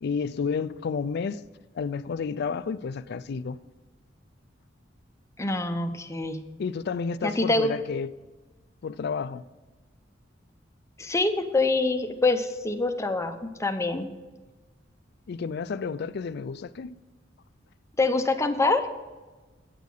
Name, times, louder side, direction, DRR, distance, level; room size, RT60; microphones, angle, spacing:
voice 1, 0.0-1.4 1.7-3.6 6.6-8.1 8.8-9.4 15.3-17.0, left 5 dB, 60° left, 0.4 m, -31 dB
voice 2, 5.4-6.4 7.2-7.7 11.0-14.1 18.0-18.8, left 2 dB, 15° left, 0.6 m, -25 dB
9.3 x 6.5 x 5.3 m
head